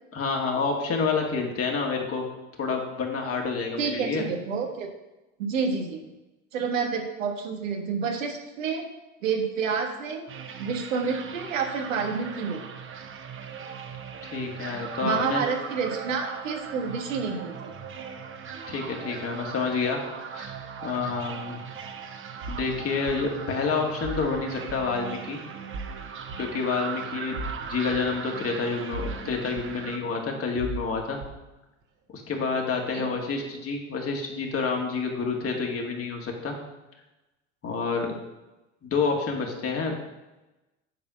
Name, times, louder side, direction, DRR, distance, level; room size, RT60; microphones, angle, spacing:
voice 1, 0.1-2.3 2.6-4.3 14.2-15.4 18.7-20.0 20.3-20.6 20.8-21.6 22.5-25.4 26.4-27.4 27.7-31.2 32.1-36.5 37.6-38.1 38.8-39.9, left 4 dB, 35° left, 1 dB, 2.2 m, -28 dB
voice 2, 3.8-4.9 5.4-6.0 6.5-8.9 9.2-10.2 10.6-12.6 15.0-17.7 32.9-33.1, right 5 dB, 85° right, 3 dB, 1.4 m, -29 dB
sound 1, 10.3-30.0, right 6 dB, 35° right, 0.9 m, -39 dB
sound 2, 22.4-22.7 23.1-23.2 24.0-24.3 24.7-24.8 25.7-25.9 26.3-26.4 27.3-27.6 27.9-28.0 28.9-29.2 29.6-29.7 30.6-30.8 31.2-31.3, right 2 dB, 55° right, 1.4 m, -35 dB
9.1 x 4.3 x 6.2 m, 1.0 s
hypercardioid pair, 85°, 38 cm